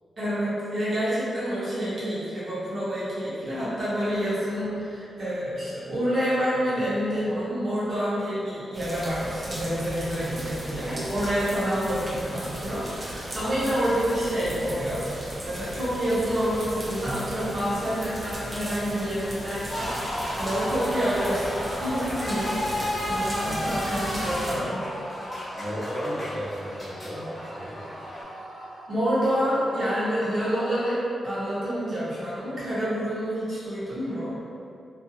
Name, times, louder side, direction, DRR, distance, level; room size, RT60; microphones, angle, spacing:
voice 1, 0.2-15.0 15.4-24.8 28.9-31.0 31.2-34.3, equal, 45° right, -10 dB, 0.7 m, -28 dB
sound 1, 8.7-24.6, right 1 dB, 20° right, 0.4 m, -37 dB
sound 2, 19.7-28.2, equal, 35° left, 0.9 m, -32 dB
sound 3, 22.3-31.0, right 1 dB, 90° right, 0.6 m, -45 dB
voice 2, 22.6-23.0 23.4-23.7 25.5-27.3 27.5-27.8, equal, ahead, -12 dB, 0.8 m, -34 dB
2.6 x 2.3 x 2.6 m, 2.6 s
wide cardioid pair, 160°, 0 cm